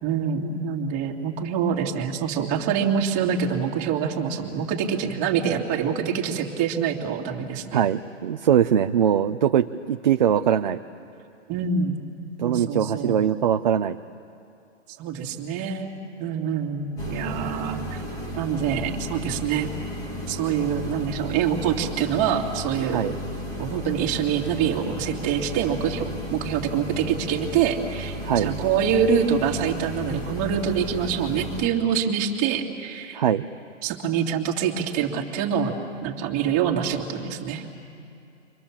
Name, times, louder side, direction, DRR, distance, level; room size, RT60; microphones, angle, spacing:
voice 1, 0.0-7.8 11.5-12.0 12.4-13.2 15.0-15.9 16.2-18.0 18.4-19.7 20.3-23.0 23.6-33.2 33.8-35.7 36.0-37.6, right 7 dB, 20° right, 0 dB, 2.2 m, -25 dB
voice 2, 7.7-10.8 12.4-14.0 22.9-23.1 28.2-28.5 33.1-33.5, right 9 dB, 35° right, 6 dB, 0.6 m, -22 dB
sound 1, 17.0-31.7, equal, 10° left, 1.6 m, -34 dB
30.0 x 24.5 x 7.2 m, 2.6 s
hypercardioid pair, 165°, 38 cm